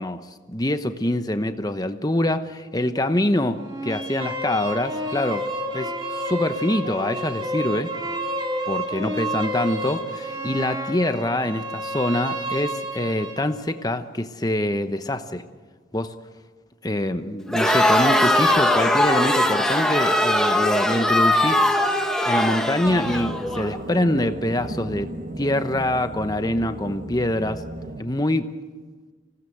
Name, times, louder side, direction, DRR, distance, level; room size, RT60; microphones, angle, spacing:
voice 1, 0.0-5.5 5.7-8.0 8.7-15.4 15.9-16.2 16.8-21.7 22.3-27.6 28.0-28.5, left 1 dB, 20° left, 1.0 m, -25 dB
sound 1, 3.6-13.5, right 1 dB, 25° right, 2.5 m, -30 dB
Crowd, 17.5-23.7, left 1 dB, 5° left, 1.3 m, -20 dB
sound 2, 22.8-28.0, right 1 dB, 40° right, 1.2 m, -35 dB
26.0 x 17.5 x 8.0 m
head